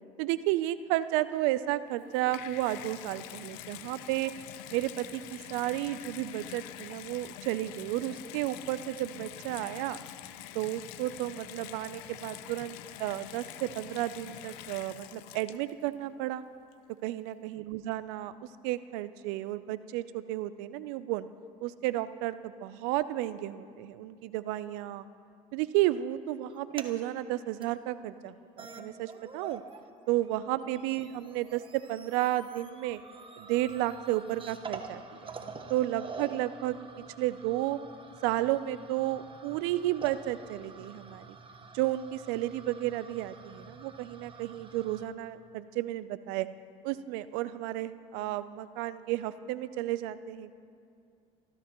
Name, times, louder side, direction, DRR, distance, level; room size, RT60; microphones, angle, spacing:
voice 1, 0.2-4.3 4.7-10.0 10.5-16.4 17.0-18.3 18.6-21.3 21.6-25.1 25.5-29.6 30.1-33.0 33.4-36.8 37.2-37.8 38.2-41.3 41.7-46.5 46.8-50.5, right 15 dB, 80° right, 15 dB, 0.5 m, -32 dB
Water tap faucet / Bathtub (filling or washing), 1.9-15.9 16.7-16.8, left 14 dB, 80° left, 0.6 m, -46 dB
sound 1, 26.5-26.9 27.6-27.7 28.3-28.4 28.6-29.8 30.1-45.0, right 4 dB, 30° right, 1.2 m, -47 dB
27.0 x 13.5 x 3.0 m, 2.4 s
supercardioid pair, 75°, 18 cm